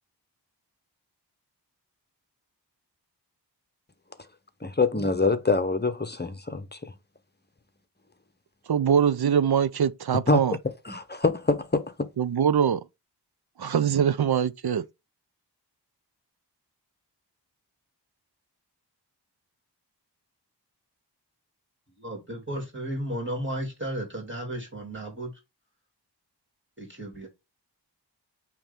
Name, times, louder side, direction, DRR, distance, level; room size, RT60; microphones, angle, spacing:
voice 1, 4.6-6.9 10.3-10.4 10.8-12.1, left 3 dB, 25° left, 1.0 m, -25 dB
voice 2, 8.7-10.6 12.2-12.8 13.6-14.8, right 8 dB, 60° right, 0.6 m, -23 dB
voice 3, 22.0-25.4 26.8-27.3, right 1 dB, 25° right, 3.0 m, -34 dB
8.8 x 3.2 x 3.7 m
wide cardioid pair, 40°, 42 cm